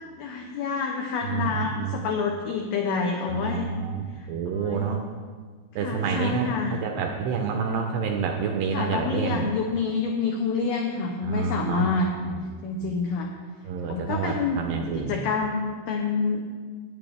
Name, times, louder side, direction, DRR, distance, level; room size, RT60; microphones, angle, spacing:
voice 1, 0.2-3.7 4.5-4.9 5.8-6.8 8.7-12.1 12.6-13.3 13.9-16.4, left 4 dB, 85° left, 2 dB, 2.2 m, -28 dB
voice 2, 1.2-1.9 3.3-5.1 5.8-9.5 11.2-11.9 12.1-12.4 12.8-12.9 13.7-15.2, right 6 dB, 85° right, 3 dB, 2.5 m, -28 dB
16.5 x 9.4 x 3.4 m, 1.5 s
omnidirectional pair, 5.6 m